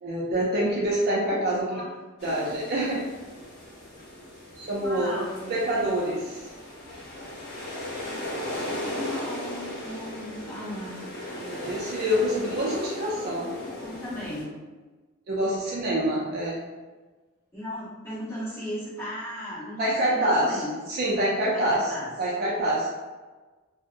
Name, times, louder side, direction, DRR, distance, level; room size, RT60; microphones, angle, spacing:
voice 1, 0.0-1.8 2.2-3.0 4.6-5.2 5.5-6.4 11.4-13.4 15.3-16.6 19.8-22.9, right 1 dB, 45° right, -3 dB, 0.4 m, -26 dB
voice 2, 1.1-1.9 4.8-6.2 8.9-11.1 13.1-14.5 17.5-21.0 21.5-22.1, equal, 15° left, -12 dB, 1.1 m, -37 dB
sound 1, 2.2-14.4, left 1 dB, 50° left, 0.9 m, -37 dB
2.7 x 2.0 x 2.5 m, 1.3 s
head